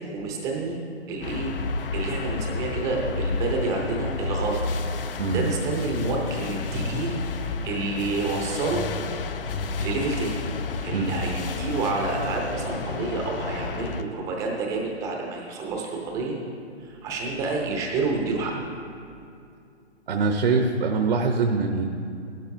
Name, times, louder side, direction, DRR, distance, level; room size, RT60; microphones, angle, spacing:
voice 1, 0.1-0.8 1.1-1.5 1.9-4.7 5.3-8.9 9.8-10.4 10.8-16.4 16.8-18.5, right 3 dB, 10° right, 0 dB, 0.7 m, -29 dB
sound 1, 1.2-14.0, left 4 dB, 50° left, 0.6 m, -31 dB
voice 2, 20.1-21.9, right 4 dB, 50° right, 5 dB, 0.8 m, -23 dB
16.5 x 12.0 x 2.6 m, 2.5 s
hypercardioid pair, 150°, 35 cm